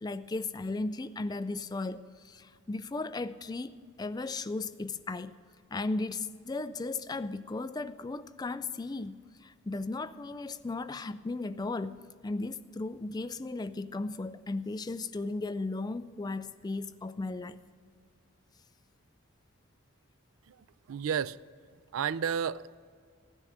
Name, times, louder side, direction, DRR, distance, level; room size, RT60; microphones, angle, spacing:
voice 1, 0.0-3.7 4.0-5.3 5.7-12.0 12.2-17.6, left 3 dB, 20° left, 0.4 m, -36 dB
voice 2, 20.9-21.4 21.9-22.8, right 7 dB, 80° right, 0.4 m, -31 dB
16.0 x 9.9 x 6.4 m
head